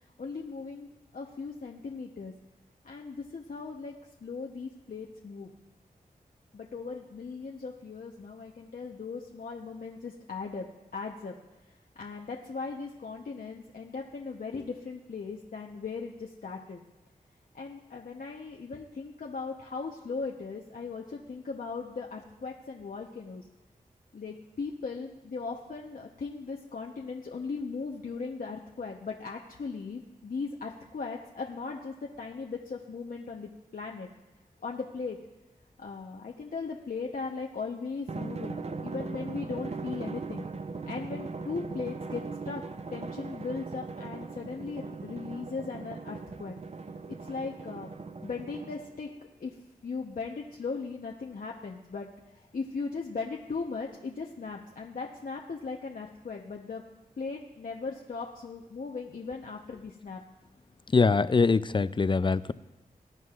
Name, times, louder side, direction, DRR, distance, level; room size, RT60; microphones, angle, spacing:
voice 1, 0.2-0.9 1.1-2.3 2.8-3.9 4.2-5.5 6.5-10.7 10.9-11.3 12.0-16.8 17.5-23.4 24.1-34.1 34.6-35.2 35.8-40.5 40.9-42.6 42.9-46.6 47.2-47.9 48.2-49.1 49.4-49.5 49.8-56.8 57.2-60.2, left 4 dB, 65° left, 0 dB, 0.9 m, -38 dB
Drum, 38.1-49.1, right 4 dB, 45° right, 0.6 m, -39 dB
voice 2, 60.9-62.5, left 4 dB, 30° left, 15 dB, 0.4 m, -23 dB
20.0 x 9.3 x 2.5 m, 1.0 s
cardioid pair, 45°, 16 cm